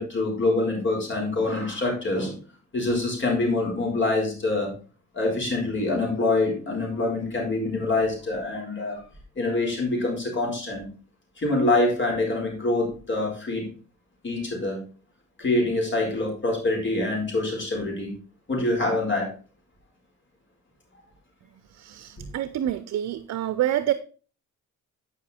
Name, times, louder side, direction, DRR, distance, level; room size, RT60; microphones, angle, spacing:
voice 1, 0.0-2.4 2.7-4.7 5.1-9.0 9.4-10.9 11.4-13.7 14.2-14.8 15.4-18.1 18.5-19.3 22.2-22.3, left 2 dB, 40° left, 0 dB, 4.4 m, -25 dB
voice 2, 21.7-23.9, right 12 dB, 60° right, 13 dB, 0.6 m, -27 dB
10.0 x 5.7 x 4.3 m, 0.38 s
cardioid pair, 90°, 30 cm